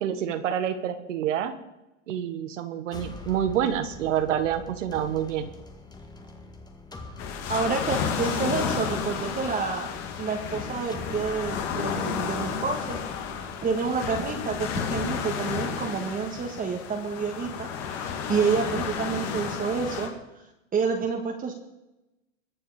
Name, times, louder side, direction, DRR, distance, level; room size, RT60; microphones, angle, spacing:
voice 1, 0.0-1.5 2.1-5.5, right 9 dB, 70° right, 9 dB, 1.7 m, -27 dB
sound 1, 2.9-15.1, left 3 dB, 10° left, 1.8 m, -44 dB
sound 2, 7.2-20.1, left 7 dB, 45° left, 2.6 m, -32 dB
voice 2, 7.5-9.9 10.2-13.0 13.6-20.1 20.7-21.5, right 5 dB, 20° right, 2 dB, 1.8 m, -29 dB
22.0 x 7.7 x 5.1 m, 0.93 s
hypercardioid pair, 115°, 38 cm